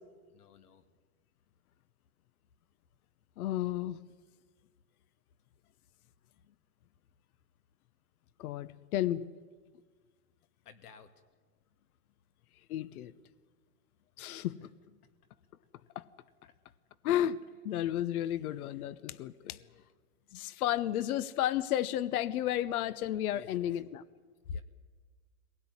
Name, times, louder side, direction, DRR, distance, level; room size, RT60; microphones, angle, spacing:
voice 1, 0.3-0.8 10.6-11.1 14.4-14.7 16.4-16.5 18.6-19.8 23.3-23.8 24.5-24.6, left 7 dB, 90° left, 7 dB, 2.4 m, -58 dB
voice 2, 3.4-4.0 8.4-9.2 12.7-13.1 14.2-14.6 15.9-16.1 17.0-17.4 17.6-19.6 20.3-24.0, left 12 dB, 75° left, 16 dB, 1.0 m, -32 dB
22.5 x 17.5 x 9.7 m, 1.5 s
supercardioid pair, 125°, 44 cm